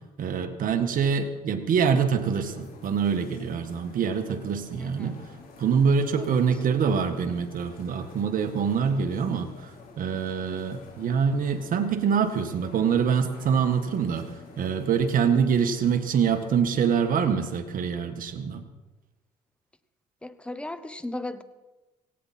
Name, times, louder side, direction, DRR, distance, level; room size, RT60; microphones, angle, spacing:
voice 1, 0.2-5.2 5.6-14.3 14.6-18.6, right 6 dB, 55° right, 1.7 m, -25 dB
sound 1, 2.2-16.5, left 4 dB, 60° left, 4.6 m, -49 dB
voice 2, 4.8-5.2 6.1-6.4 20.2-21.4, left 2 dB, 5° left, 1.0 m, -36 dB
18.0 x 17.5 x 4.4 m
cardioid pair, 110°, 17 cm